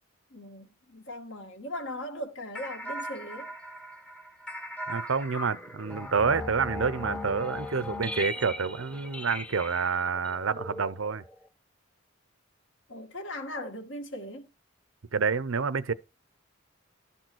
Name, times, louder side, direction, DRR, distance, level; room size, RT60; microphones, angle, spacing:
voice 1, 0.3-3.5 12.9-14.5, left 1 dB, 65° left, 1.9 m, -39 dB
sound 1, 2.5-11.5, left 1 dB, 5° left, 0.8 m, -38 dB
voice 2, 4.9-11.2 15.1-15.9, right 5 dB, 75° right, 0.7 m, -28 dB
12.5 x 4.3 x 6.2 m
head